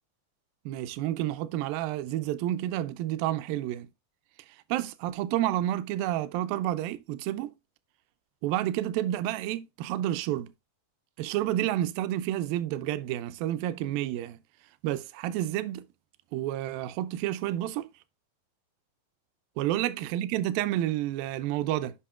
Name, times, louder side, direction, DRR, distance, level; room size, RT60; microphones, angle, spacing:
voice 1, 0.7-3.9 4.7-7.5 8.4-10.5 11.2-14.4 14.8-15.8 16.3-17.9 19.6-21.9, right 13 dB, 85° right, 2.3 m, -30 dB
8.4 x 5.5 x 2.4 m
omnidirectional pair, 4.2 m